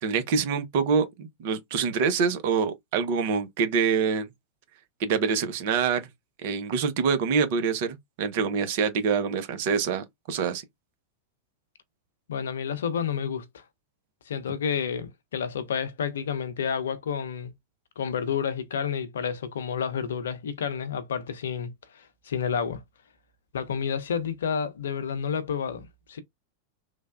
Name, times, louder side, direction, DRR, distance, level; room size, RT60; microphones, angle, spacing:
voice 1, 0.0-4.3 5.0-6.1 6.4-10.6, right 6 dB, 50° right, 0.6 m, -25 dB
voice 2, 12.3-13.6 14.3-17.5 18.0-22.8 23.5-26.2, left 7 dB, 65° left, 0.6 m, -30 dB
3.2 x 2.1 x 2.4 m
figure-of-eight pair, 90°, 0 cm